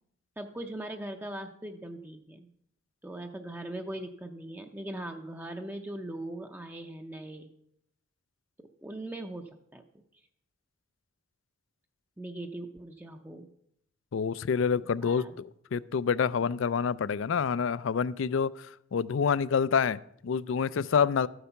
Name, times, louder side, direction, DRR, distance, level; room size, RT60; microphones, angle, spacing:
voice 1, 0.4-2.5 3.0-7.5 8.8-9.8 12.2-13.5 15.0-15.3, right 1 dB, 10° right, 4 dB, 0.6 m, -40 dB
voice 2, 14.1-15.3 15.7-18.7 18.9-21.3, left 6 dB, 70° left, 20 dB, 0.4 m, -27 dB
13.0 x 8.0 x 5.7 m, 0.75 s
head